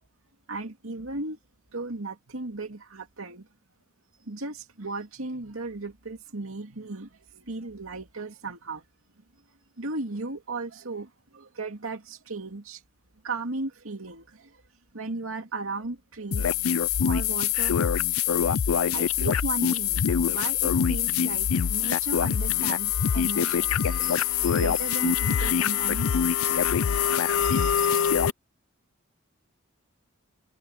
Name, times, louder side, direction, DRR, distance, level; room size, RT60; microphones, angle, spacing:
voice 1, 0.5-1.4 1.7-3.5 4.3-8.8 9.8-12.8 13.2-14.6 14.9-16.5 17.1-17.8 18.5-26.1 26.3-26.7 27.0-28.1, right 3 dB, 80° right, 2.4 m, -36 dB
sound 1, 16.3-28.3, left 8 dB, 90° left, 0.5 m, -24 dB
head